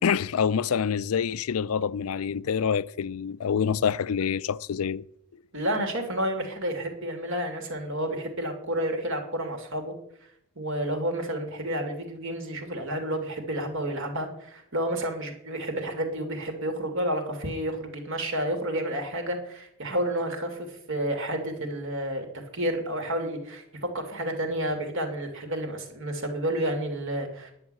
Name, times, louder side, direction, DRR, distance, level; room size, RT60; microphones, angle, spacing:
voice 1, 0.0-5.0, left 7 dB, 75° left, 0.4 m, -26 dB
voice 2, 5.5-9.9 10.6-22.3 22.5-27.5, right 1 dB, 60° right, 2.9 m, -30 dB
11.0 x 7.3 x 8.6 m
head